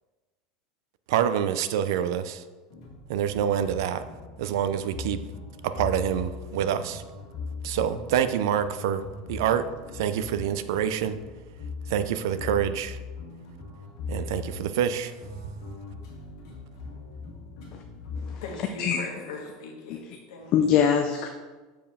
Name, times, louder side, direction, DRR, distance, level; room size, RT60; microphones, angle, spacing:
voice 1, 1.1-2.4 3.1-4.0 4.4-5.2 5.6-7.0 7.6-9.0 9.3-9.7 9.9-11.2 11.9-13.0 14.1-15.1, right 9 dB, 70° right, 12 dB, 0.4 m, -26 dB
sound 1, 2.7-18.4, left 4 dB, 70° left, 2.1 m, -40 dB
voice 2, 18.4-20.6, left 3 dB, 90° left, 0 dB, 1.4 m, -40 dB
voice 3, 20.5-21.3, left 8 dB, 35° left, 5 dB, 0.4 m, -23 dB
7.2 x 4.7 x 3.5 m, 1.3 s
supercardioid pair, 165°, 2 cm